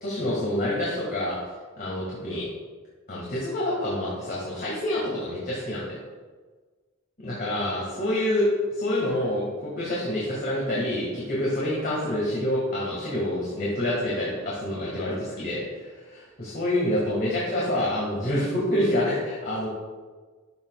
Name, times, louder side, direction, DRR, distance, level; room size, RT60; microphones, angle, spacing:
voice 1, 0.0-1.4 1.8-2.5 3.1-6.0 7.2-15.6 16.1-19.7, left 1 dB, 45° left, -6 dB, 1.8 m, -27 dB
12.0 x 6.1 x 2.3 m, 1.4 s
head